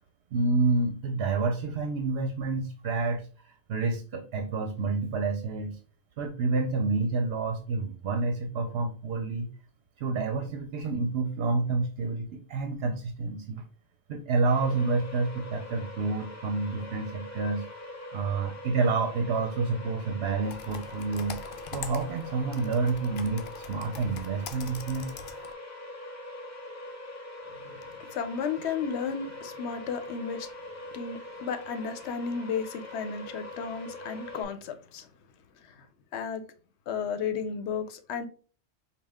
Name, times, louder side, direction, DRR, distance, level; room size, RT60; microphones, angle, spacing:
voice 1, 0.3-5.8 6.2-9.5 10.0-13.6 14.1-17.7 18.1-21.4 21.7-25.1, right 3 dB, 70° right, 0.8 m, -29 dB
sound 1, 14.4-34.4, left 2 dB, 15° left, 0.8 m, -43 dB
Computer keyboard, 20.4-25.5, left 7 dB, 60° left, 0.6 m, -43 dB
voice 2, 27.6-30.5 30.9-35.1 35.6-35.9 36.1-36.4 36.9-38.3, left 6 dB, 90° left, 0.9 m, -33 dB
5.3 x 2.3 x 3.5 m
omnidirectional pair, 1.1 m